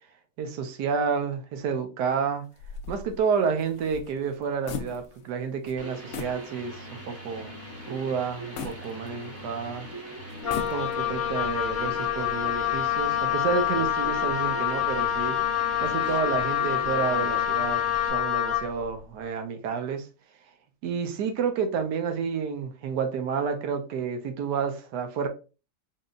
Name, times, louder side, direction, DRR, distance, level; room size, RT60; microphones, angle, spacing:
voice 1, 0.4-2.4 2.9-7.5 7.9-9.9 10.5-15.4 15.8-20.1 20.8-25.3, right 6 dB, 75° right, 1.3 m, -30 dB
sound 1, 2.6-5.4 5.6-5.8 6.1-6.4 6.9-7.0 8.6-9.6 10.3-11.2, left 6 dB, 85° left, 0.6 m, -38 dB
sound 2, 5.8-18.1, right 1 dB, 10° right, 0.8 m, -41 dB
Wind instrument woodwind instrument, 10.4-18.7, left 11 dB, 65° left, 1.2 m, -26 dB
3.8 x 3.7 x 2.4 m
omnidirectional pair, 1.8 m